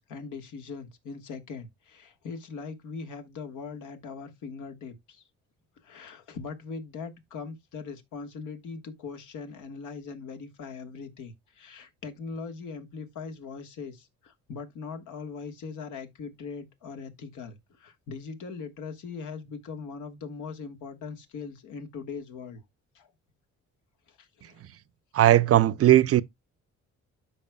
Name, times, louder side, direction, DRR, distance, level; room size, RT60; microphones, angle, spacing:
voice 1, 0.0-5.2 5.8-22.6 22.9-23.1 24.1-24.6, left 5 dB, 80° left, 1.4 m, -40 dB
voice 2, 25.1-26.2, right 13 dB, 50° right, 0.5 m, -18 dB
12.5 x 4.8 x 2.2 m
cardioid pair, 90°, 30 cm